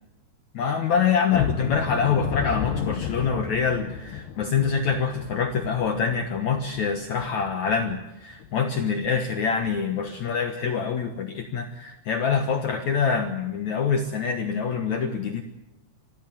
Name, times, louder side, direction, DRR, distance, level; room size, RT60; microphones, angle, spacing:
voice 1, 0.5-15.4, left 6 dB, 60° left, 6 dB, 2.2 m, -25 dB
sound 1, 1.3-8.0 8.4-8.6 9.0-9.1 9.6-9.8, left 8 dB, 85° left, 3.3 m, -33 dB
25.5 x 15.0 x 9.1 m, 0.95 s
omnidirectional pair, 4.7 m